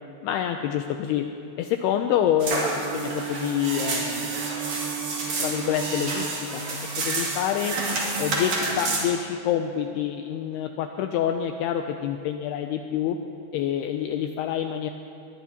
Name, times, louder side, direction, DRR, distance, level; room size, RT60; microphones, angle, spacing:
voice 1, 0.2-1.3 1.6-4.4 5.4-7.7 8.2-13.2 13.5-14.9, left 10 dB, 90° left, 6 dB, 2.3 m, -27 dB
sound 1, 2.4-9.0, right 2 dB, 45° right, 3.1 m, -29 dB
Bowed string instrument, 2.4-7.0, right 10 dB, 70° right, 2.2 m, -35 dB
21.0 x 20.5 x 2.9 m, 2.8 s
omnidirectional pair, 5.2 m